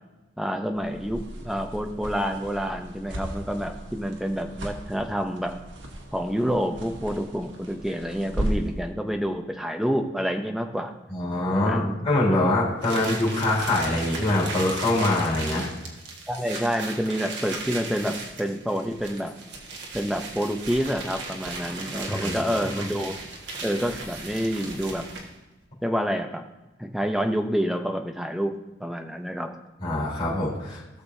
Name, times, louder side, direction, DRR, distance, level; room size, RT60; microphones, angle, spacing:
voice 1, 0.4-5.6 6.1-10.9 11.5-12.0 16.3-19.3 19.9-23.1 23.6-25.1 25.8-26.4 26.8-28.5 28.8-29.5, equal, ahead, 4 dB, 0.7 m, -28 dB
sound 1, 0.7-8.8, right 1 dB, 90° right, 1.6 m, -36 dB
voice 2, 11.1-15.7 22.1-22.4 29.8-30.8, left 1 dB, 35° left, -8 dB, 3.6 m, -24 dB
sound 2, 12.8-25.4, right 3 dB, 70° right, 1.7 m, -37 dB
17.0 x 6.6 x 2.7 m, 1.1 s
head